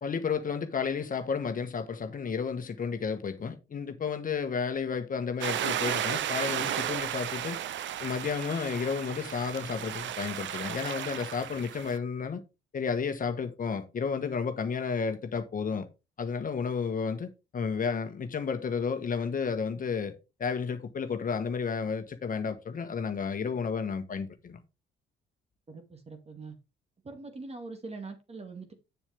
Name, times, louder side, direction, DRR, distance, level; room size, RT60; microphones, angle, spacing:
voice 1, 0.0-7.6 8.0-12.4 12.7-15.9 16.2-20.1 20.4-24.6, left 5 dB, 45° left, 1.3 m, -32 dB
sound 1, 5.4-12.0, right 10 dB, 70° right, 0.7 m, -34 dB
voice 2, 25.7-26.5 27.0-28.7, right 3 dB, 30° right, 2.4 m, -43 dB
8.2 x 7.1 x 3.5 m
cardioid pair, 90°, 20 cm